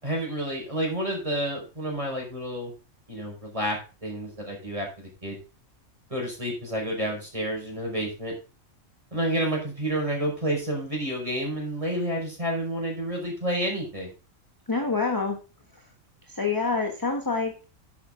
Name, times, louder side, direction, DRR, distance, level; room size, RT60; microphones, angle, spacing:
voice 1, 0.0-2.7 3.1-5.4 6.1-8.3 9.1-14.1, right 1 dB, 25° right, 0 dB, 5.1 m, -30 dB
voice 2, 14.7-15.4 16.3-17.6, left 4 dB, 15° left, 3 dB, 1.3 m, -26 dB
11.0 x 8.6 x 3.8 m, 0.33 s
omnidirectional pair, 1.4 m